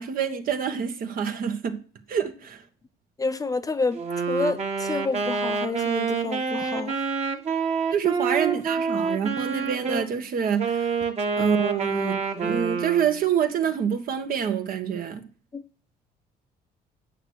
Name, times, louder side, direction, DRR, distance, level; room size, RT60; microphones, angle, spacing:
voice 1, 0.0-1.8 2.1-2.6 7.9-11.0 11.4-15.2, right 8 dB, 60° right, 1.5 m, -26 dB
voice 2, 3.2-4.0 4.3-7.0 15.5-15.6, left 3 dB, 20° left, 0.7 m, -28 dB
Wind instrument woodwind instrument, 3.9-10.1 10.6-13.2, right 5 dB, 40° right, 1.9 m, -27 dB
8.8 x 6.4 x 6.4 m
cardioid pair, 110°, 17 cm